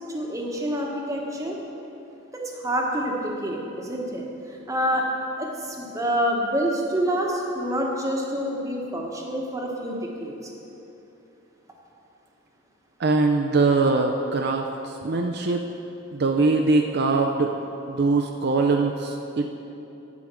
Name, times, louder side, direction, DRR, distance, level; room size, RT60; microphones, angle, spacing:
voice 1, 0.1-1.6 2.3-4.2 4.7-5.1 5.4-10.5, equal, 15° right, -1 dB, 1.1 m, -27 dB
voice 2, 13.0-15.6 16.1-17.5 17.9-19.5, right 3 dB, 55° right, 3 dB, 0.5 m, -22 dB
11.0 x 5.1 x 7.4 m, 2.9 s
head